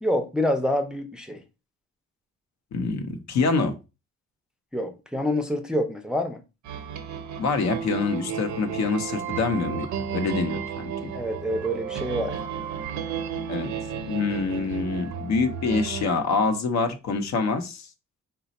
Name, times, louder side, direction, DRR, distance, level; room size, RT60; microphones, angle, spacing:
voice 1, 0.0-1.4 4.7-6.4 11.1-12.3, equal, ahead, 0.5 m, -26 dB
voice 2, 2.7-3.7 7.4-10.9 13.5-13.7 14.1-17.9, left 4 dB, 65° left, 0.8 m, -26 dB
sound 1, 6.6-16.1, right 7 dB, 70° right, 0.7 m, -33 dB
4.2 x 2.2 x 4.0 m
cardioid pair, 90°, 30 cm